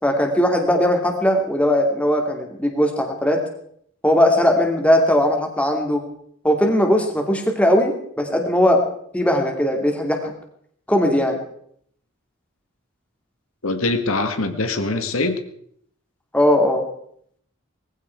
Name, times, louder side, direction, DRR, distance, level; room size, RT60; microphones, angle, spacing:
voice 1, 0.0-3.4 4.0-6.0 6.4-8.8 9.1-10.2 10.9-11.4 16.3-16.8, left 1 dB, 5° left, 2 dB, 2.7 m, -19 dB
voice 2, 13.6-15.4, left 2 dB, 90° left, 7 dB, 1.8 m, -23 dB
19.5 x 15.5 x 4.7 m, 0.66 s
head